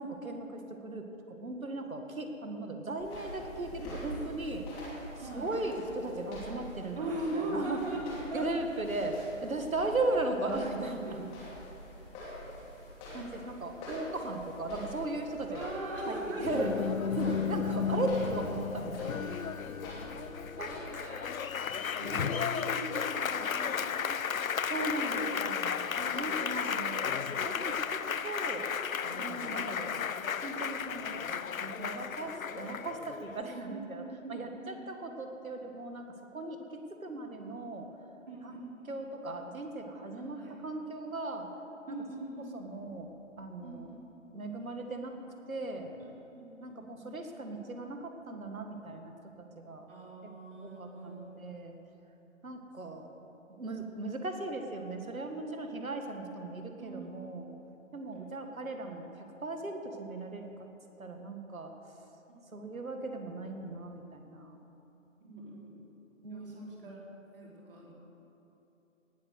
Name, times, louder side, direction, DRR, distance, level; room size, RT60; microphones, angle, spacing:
voice 1, 0.0-4.7 5.2-7.8 8.3-11.3 13.1-15.7 16.1-16.7 17.1-19.4 20.6-21.0 22.0-22.3 24.7-27.2 27.4-28.7 29.0-29.9 30.4-31.3 31.6-34.0 34.3-37.9 38.4-38.5 38.8-41.5 41.9-42.0 42.5-43.1 43.4-43.9 44.3-45.1 45.5-45.9 46.6-49.1 49.5-49.9 50.2-50.3 50.6-51.7 52.4-53.1 53.5-57.5 57.9-60.7 61.0-61.7 62.5-64.6 66.2-67.0, right 2 dB, 85° right, 5 dB, 1.9 m, -37 dB
sound 1, 3.0-20.8, equal, 15° left, 2.9 m, -46 dB
voice 2, 5.1-5.5 7.0-8.0 8.3-8.5 11.1-11.2 15.5-16.7 20.9-21.4 22.0-23.4 23.7-24.1 24.9-25.3 29.1-29.6 33.7-34.4 34.7-34.8 38.3-38.9 40.1-40.5 41.9-42.6 43.6-44.0 46.0-46.1 46.4-47.1 49.9-51.6 52.9-53.0 55.3-55.6 56.8-57.3 58.2-58.3 62.3-62.4 65.2-65.8 66.3-67.0 67.3-67.9, right 2 dB, 40° right, -3 dB, 3.7 m, -41 dB
Applause, 16.4-33.4, left 7 dB, 85° left, 0.6 m, -34 dB
18.5 x 7.6 x 6.4 m, 3.0 s
figure-of-eight pair, 155°, 40 cm